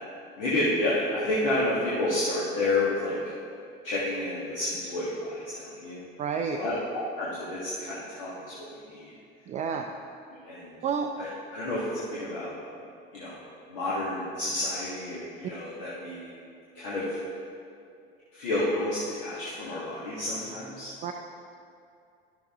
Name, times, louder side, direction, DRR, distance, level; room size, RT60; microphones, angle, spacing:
voice 1, 0.4-3.2 3.8-6.0 6.5-6.7 7.2-8.4 8.7-9.1 9.6-9.8 10.4-10.8 11.2-12.5 13.1-13.4 13.7-16.3 16.8-17.2 18.3-20.9, left 1 dB, 60° left, -8 dB, 1.8 m, -30 dB
voice 2, 6.2-6.6 9.5-9.8 10.8-11.1 21.0-21.1, right 6 dB, 25° right, 4 dB, 0.4 m, -29 dB
11.5 x 7.0 x 3.6 m, 2.4 s
figure-of-eight pair, 70°, 30 cm